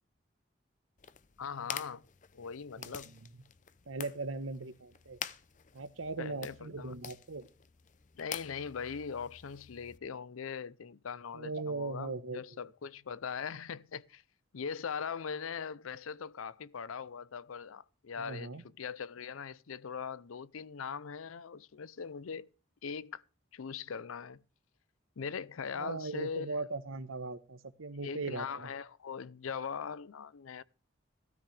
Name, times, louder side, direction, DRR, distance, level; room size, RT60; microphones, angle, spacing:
sound 1, 1.0-10.0, left 8 dB, 40° left, 0.6 m, -47 dB
voice 1, 1.4-2.0 2.3-3.1 6.2-6.9 8.1-14.2 14.5-22.5 22.8-23.2 23.5-24.4 25.2-26.6 28.0-30.6, left 6 dB, 90° left, 0.6 m, -41 dB
voice 2, 3.9-5.2 5.7-7.5 11.3-12.6 18.2-18.6 25.8-28.7, right 3 dB, 80° right, 1.1 m, -39 dB
15.5 x 13.5 x 3.3 m
head